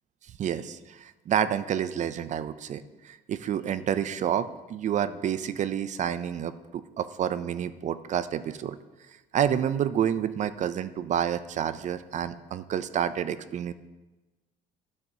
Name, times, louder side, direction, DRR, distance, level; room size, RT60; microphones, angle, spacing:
voice 1, 0.4-8.8 9.3-13.7, right 9 dB, 45° right, 14 dB, 0.4 m, -29 dB
12.5 x 5.9 x 2.8 m, 1.1 s
cardioid pair, 110°, 17 cm